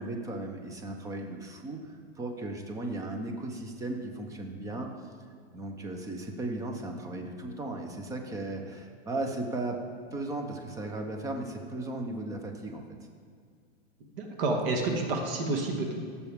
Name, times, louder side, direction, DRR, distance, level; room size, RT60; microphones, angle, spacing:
voice 1, 0.0-4.9 5.5-9.8 10.1-12.8, right 2 dB, 10° right, 3 dB, 0.7 m, -36 dB
voice 2, 14.1-15.9, right 2 dB, 60° right, 2 dB, 1.5 m, -29 dB
15.0 x 6.8 x 3.5 m, 2.1 s
supercardioid pair, 155°, 32 cm